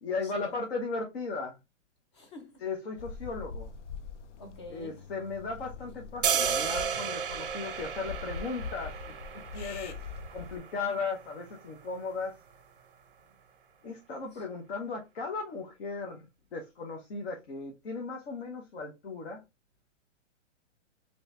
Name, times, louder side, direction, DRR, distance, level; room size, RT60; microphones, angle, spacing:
voice 1, 0.0-1.6 2.6-3.7 4.7-10.0 10.3-12.4 13.8-16.2 16.5-19.4, left 4 dB, 55° left, 1.0 m, -36 dB
voice 2, 2.1-2.6 4.4-5.0, left 2 dB, 25° left, 0.6 m, -47 dB
sound 1, 3.0-10.6, left 5 dB, 70° left, 0.6 m, -43 dB
sound 2, 6.2-12.3, right 7 dB, 45° right, 0.5 m, -34 dB
3.1 x 2.9 x 3.2 m
hypercardioid pair, 175°, 37 cm